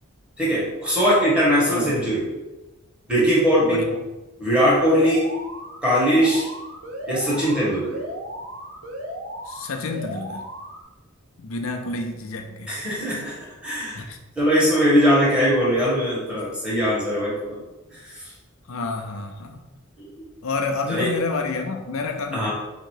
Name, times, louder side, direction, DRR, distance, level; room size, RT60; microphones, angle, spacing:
voice 1, 0.4-2.2 3.1-3.9 4.4-5.3 5.8-6.5 7.1-8.0 12.7-13.4 13.6-14.0 14.4-17.6 20.0-20.1 20.9-21.1 22.3-22.5, equal, 5° right, -7 dB, 1.4 m, -20 dB
voice 2, 1.7-2.0 3.6-4.0 9.5-10.5 11.4-12.8 13.9-14.2 18.7-19.6 20.4-22.5, left 3 dB, 75° left, 5 dB, 0.6 m, -29 dB
Alarm, 4.8-10.8, equal, 75° right, 0.9 m, -35 dB
3.8 x 2.9 x 4.6 m, 1.1 s
head